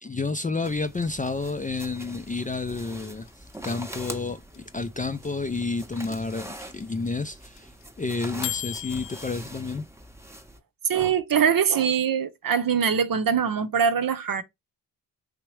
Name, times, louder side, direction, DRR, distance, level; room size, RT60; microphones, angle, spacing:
voice 1, 0.0-7.7 8.0-9.8, left 3 dB, 20° left, 0.4 m, -30 dB
sound 1, 0.6-10.6, right 1 dB, 5° right, 0.8 m, -44 dB
sound 2, 1.0-9.3, left 15 dB, 75° left, 0.6 m, -36 dB
voice 2, 10.9-14.4, right 7 dB, 50° right, 0.7 m, -23 dB
3.4 x 2.9 x 3.1 m
supercardioid pair, 45°, 45 cm